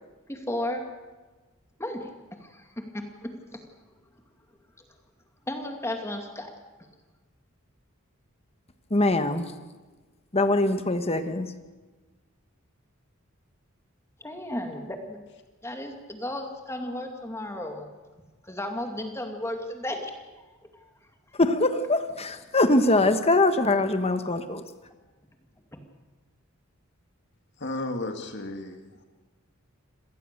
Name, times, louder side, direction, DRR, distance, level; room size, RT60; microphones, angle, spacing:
voice 1, 0.3-0.8 1.8-2.1 2.4-3.6 5.5-6.5 14.2-15.2 15.6-17.9 18.4-20.1 20.7-20.9 25.7-25.8, left 1 dB, 15° left, 4 dB, 2.3 m, -34 dB
voice 2, 8.9-9.5 10.3-11.5 21.3-24.6, left 2 dB, 30° left, 9 dB, 1.3 m, -23 dB
voice 3, 27.6-29.0, left 2 dB, 55° left, 4 dB, 2.1 m, -34 dB
26.0 x 19.0 x 6.8 m, 1.3 s
head